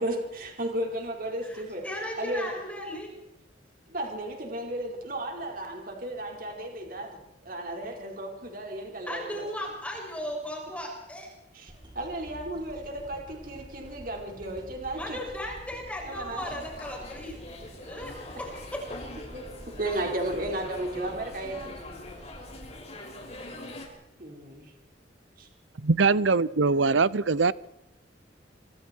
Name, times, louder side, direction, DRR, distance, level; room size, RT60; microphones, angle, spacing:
voice 1, 0.0-1.9 2.2-2.5 3.9-9.4 11.5-15.2 16.0-16.4 19.3-21.7 24.2-24.7 25.4-25.5, right 1 dB, 50° right, 2 dB, 4.9 m, -34 dB
voice 2, 1.4-3.2 9.1-11.3 14.9-17.4 17.9-18.9, left 1 dB, 5° left, -1 dB, 7.0 m, -36 dB
sound 1, 11.7-23.9 24.4-24.5, equal, 25° right, 6.7 m, -48 dB
sound 2, 16.4-23.9, left 2 dB, 35° left, 5.9 m, -43 dB
voice 3, 25.8-27.5, right 4 dB, 90° right, 19 dB, 0.7 m, -22 dB
26.5 x 25.5 x 4.6 m, 0.85 s
head